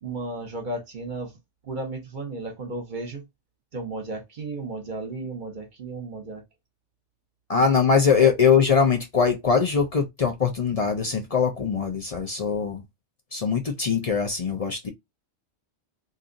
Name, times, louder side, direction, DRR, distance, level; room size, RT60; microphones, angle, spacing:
voice 1, 0.0-1.4 1.6-3.2 3.7-6.4 8.1-8.3, right 2 dB, 45° right, 1.0 m, -34 dB
voice 2, 7.5-12.8 13.3-14.9, left 6 dB, 45° left, 0.5 m, -22 dB
2.6 x 2.4 x 3.9 m
omnidirectional pair, 1.2 m